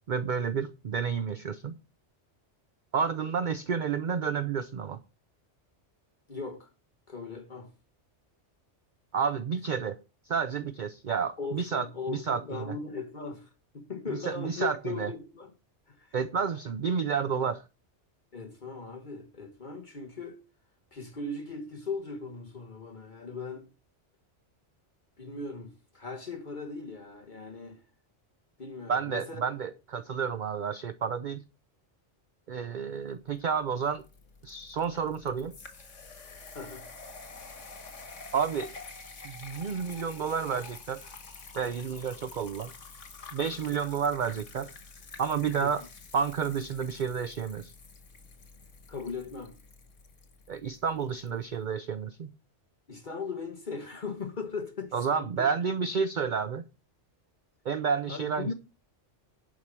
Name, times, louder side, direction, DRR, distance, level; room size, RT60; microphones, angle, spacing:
voice 1, 0.1-1.7 2.9-5.0 9.1-10.0 10.2-12.7 14.2-15.1 16.1-17.6 28.9-31.4 32.5-34.0 34.4-35.5 38.3-38.7 39.2-41.0 41.5-42.7 43.3-44.7 45.2-45.8 46.1-47.7 50.5-52.3 54.9-56.6 57.6-58.5, right 6 dB, 50° right, 0.7 m, -30 dB
voice 2, 6.3-6.7 7.1-7.7 11.4-15.5 15.9-16.2 18.3-20.4 20.9-23.7 25.2-27.8 28.6-29.4 36.5-36.9 45.6-45.9 48.9-49.6 51.2-51.3 52.9-55.5 58.1-58.5, left 4 dB, 45° left, 1.2 m, -38 dB
sound 1, 33.3-51.3, left 4 dB, 90° left, 2.0 m, -48 dB
11.5 x 4.7 x 7.3 m
omnidirectional pair, 1.2 m